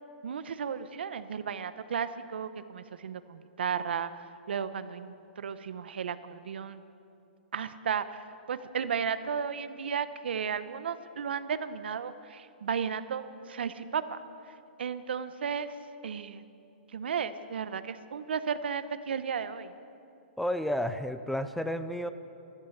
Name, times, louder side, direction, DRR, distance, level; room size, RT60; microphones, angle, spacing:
voice 1, 0.2-4.1 4.5-6.8 7.5-14.2 14.8-15.8 16.0-16.4 16.9-19.7, right 7 dB, 80° right, 12 dB, 0.9 m, -34 dB
voice 2, 20.4-22.1, equal, ahead, 10 dB, 0.5 m, -31 dB
14.0 x 13.5 x 7.2 m, 2.7 s
hypercardioid pair, 140°, 6 cm